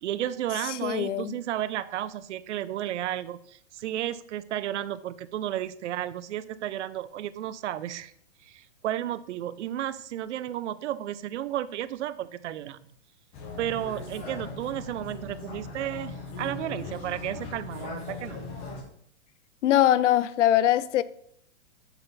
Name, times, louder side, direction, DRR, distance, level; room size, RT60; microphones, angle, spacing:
voice 1, 0.0-8.1 8.4-12.8 13.6-18.4, right 12 dB, 75° right, 0.5 m, -33 dB
voice 2, 0.8-1.4 19.6-21.0, left 12 dB, 85° left, 0.5 m, -22 dB
sound 1, 13.3-18.8, left 3 dB, 25° left, 1.1 m, -39 dB
7.1 x 3.9 x 4.0 m
hypercardioid pair, 160°, 35 cm